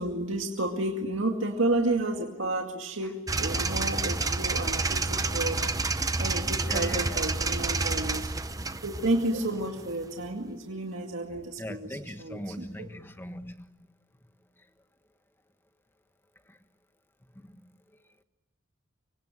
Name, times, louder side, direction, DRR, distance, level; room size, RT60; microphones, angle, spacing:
voice 1, 0.0-5.6 6.2-8.3 8.8-11.8 12.2-12.4, right 2 dB, 70° right, 2 dB, 2.3 m, -31 dB
sound 1, 3.3-10.3, right 3 dB, 20° right, 0.9 m, -29 dB
voice 2, 6.6-7.2 11.6-14.0 14.6-14.8 16.4-16.6 17.2-18.2, left 1 dB, 10° left, 8 dB, 1.4 m, -41 dB
25.0 x 25.0 x 9.2 m, 1.1 s
head